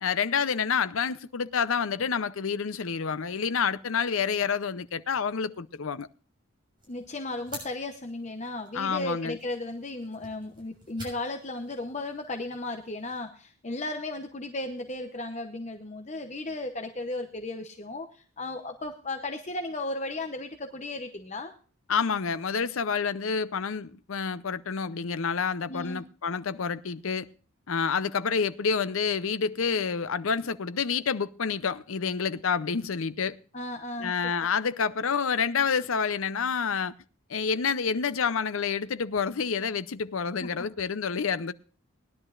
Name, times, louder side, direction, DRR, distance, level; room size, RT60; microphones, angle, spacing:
voice 1, 0.0-6.1 8.7-9.4 21.9-27.3 27.7-33.4 34.0-36.9 37.3-41.5, left 6 dB, 75° left, 0.6 m, -28 dB
sound 1, 6.8-13.2, right 1 dB, 20° right, 7.0 m, -50 dB
voice 2, 6.9-21.5 25.7-26.0 33.5-34.1 40.4-40.5, left 2 dB, 35° left, 0.8 m, -35 dB
20.5 x 11.0 x 2.5 m
head